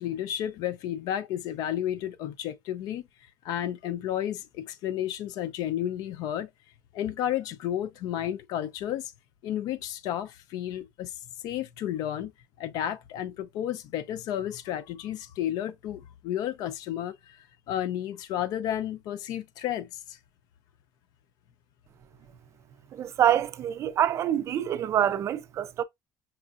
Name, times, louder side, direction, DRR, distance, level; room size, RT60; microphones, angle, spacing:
voice 1, 0.0-3.0 3.4-6.5 6.9-9.1 9.4-11.1 11.4-12.3 12.6-20.2, left 11 dB, 70° left, 0.5 m, -32 dB
voice 2, 22.9-25.8, right 10 dB, 45° right, 0.4 m, -26 dB
5.5 x 2.4 x 2.4 m
cardioid pair, 135°, 7 cm